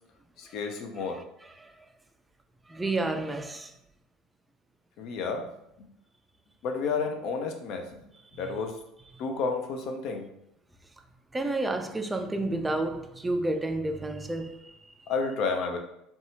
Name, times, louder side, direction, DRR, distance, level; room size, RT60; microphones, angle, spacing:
voice 1, 0.4-1.2 5.0-5.4 6.6-7.8 8.4-8.7 9.2-10.3 15.1-15.8, left 4 dB, 60° left, 0.4 m, -30 dB
voice 2, 1.4-1.8 2.7-3.7 8.3-8.6 11.3-14.8, right 2 dB, 15° right, 0.3 m, -31 dB
2.7 x 2.3 x 2.8 m
hypercardioid pair, 70°, 0 cm